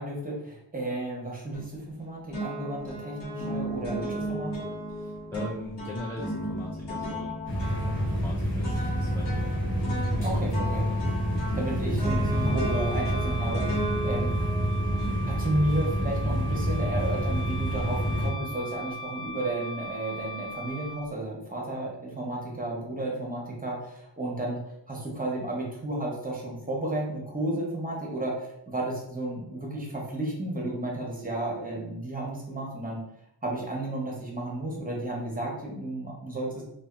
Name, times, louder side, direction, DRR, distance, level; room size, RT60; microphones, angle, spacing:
voice 1, 0.0-4.7 10.2-10.9 11.5-14.3 15.3-24.6 24.9-33.0 33.4-36.6, right 1 dB, 20° right, -2 dB, 0.7 m, -32 dB
sound 1, 1.5-2.0 2.3-15.7, right 1 dB, 65° left, 1.1 m, -35 dB
voice 2, 4.9-7.4 7.7-9.6 9.9-10.3, left 1 dB, 5° left, -4 dB, 0.3 m, -40 dB
sound 2, 7.5-18.3, equal, 25° left, 0.9 m, -28 dB
Wind instrument woodwind instrument, 12.2-21.0, right 1 dB, 85° left, 0.9 m, -39 dB
2.6 x 2.3 x 2.3 m, 0.79 s
wide cardioid pair, 70°, 45 cm